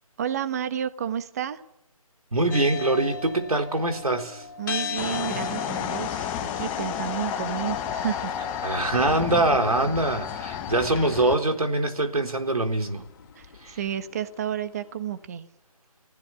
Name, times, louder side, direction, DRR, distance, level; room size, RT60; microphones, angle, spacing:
voice 1, 0.2-1.6 4.6-8.3 13.4-15.5, right 9 dB, 25° right, 1.3 m, -31 dB
voice 2, 2.3-4.5 8.6-13.0 13.6-13.8, right 2 dB, 80° right, 4.0 m, -24 dB
sound 1, 2.5-14.6, left 5 dB, 35° left, 2.9 m, -39 dB
sound 2, 5.0-11.4, left 9 dB, 10° left, 0.9 m, -31 dB
28.5 x 16.5 x 10.0 m
figure-of-eight pair, 155°, 19 cm